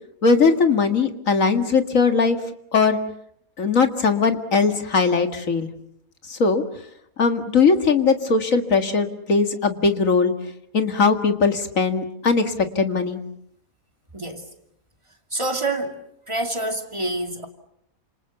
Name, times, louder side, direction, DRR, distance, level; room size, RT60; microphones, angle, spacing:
voice 1, 0.2-2.4 2.7-3.0 3.6-5.7 6.3-6.6 7.2-10.3 10.7-13.2, left 4 dB, 65° left, 2.4 m, -19 dB
voice 2, 14.1-14.5 15.3-16.0 16.3-17.5, right 2 dB, 20° right, 2.7 m, -27 dB
29.5 x 27.5 x 7.1 m
omnidirectional pair, 1.5 m